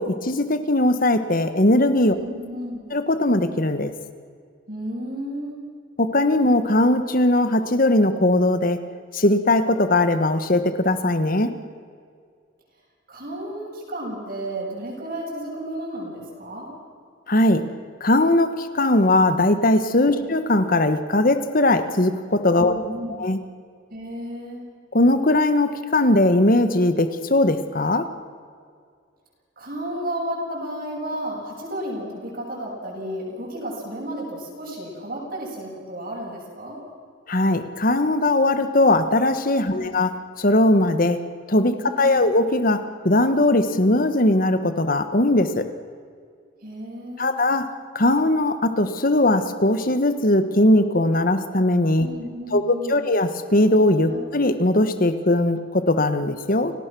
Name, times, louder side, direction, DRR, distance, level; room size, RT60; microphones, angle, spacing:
voice 1, 0.0-2.2 2.9-3.9 6.0-8.8 9.1-11.5 17.3-17.7 18.0-22.7 23.2-23.4 24.9-28.1 37.3-41.2 41.5-45.7 47.2-47.7 47.9-52.1 52.5-56.7, left 1 dB, 45° left, 10 dB, 1.4 m, -19 dB
voice 2, 2.1-2.8 4.7-5.6 13.1-16.7 20.1-20.3 22.6-23.2 23.9-24.6 29.6-36.8 39.7-39.9 41.8-42.3 46.6-47.3 52.0-53.1 54.1-54.2, equal, 45° right, -4 dB, 7.0 m, -33 dB
30.0 x 18.5 x 6.2 m, 2.1 s
head